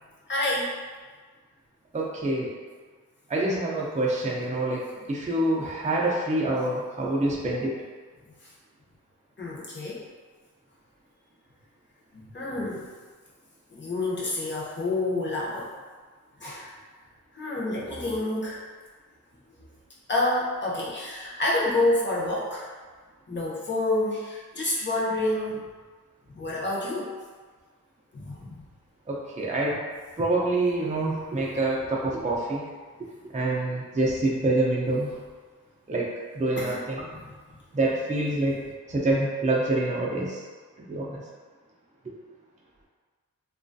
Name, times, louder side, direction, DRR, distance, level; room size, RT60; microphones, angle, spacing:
voice 1, 0.3-0.7 6.6-6.8 8.4-8.5 9.4-10.0 12.1-12.9 13.7-15.7 16.4-16.7 17.3-18.6 20.1-22.7 23.3-25.7 26.3-27.1 28.1-28.5 36.6-36.8 37.1-37.2 38.5-38.6, left 2 dB, 30° left, -6 dB, 0.8 m, -28 dB
voice 2, 1.9-2.5 3.3-4.8 5.1-7.7 29.1-29.8 30.2-32.6 33.3-35.1 35.9-36.1 36.3-37.0 37.7-38.6 38.9-40.4 40.9-41.2, right 2 dB, 20° right, -4 dB, 0.5 m, -26 dB
3.0 x 2.3 x 2.6 m, 1.5 s
wide cardioid pair, 65°, 35 cm